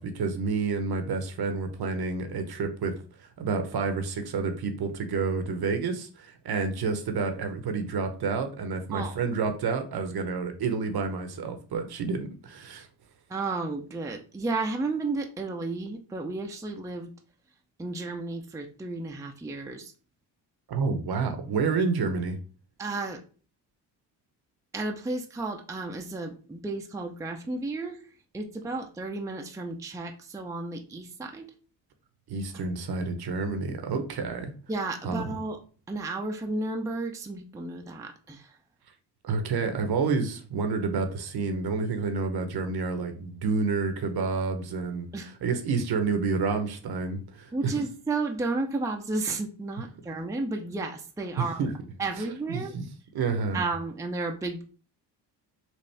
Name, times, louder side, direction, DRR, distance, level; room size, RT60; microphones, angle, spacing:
voice 1, 0.0-12.9 20.7-22.4 32.3-34.5 35.0-35.4 39.2-47.7 51.4-51.7 52.1-52.9 53.1-53.7, right 4 dB, 50° right, 0.9 m, -29 dB
voice 2, 13.3-17.1 17.8-19.9 22.8-23.2 24.7-28.0 28.3-31.5 34.7-35.6 35.9-38.5 45.1-45.3 47.5-51.6 52.0-52.8 53.5-54.6, right 3 dB, 5° right, 0.6 m, -32 dB
4.3 x 2.4 x 3.3 m
hypercardioid pair, 55°, 49 cm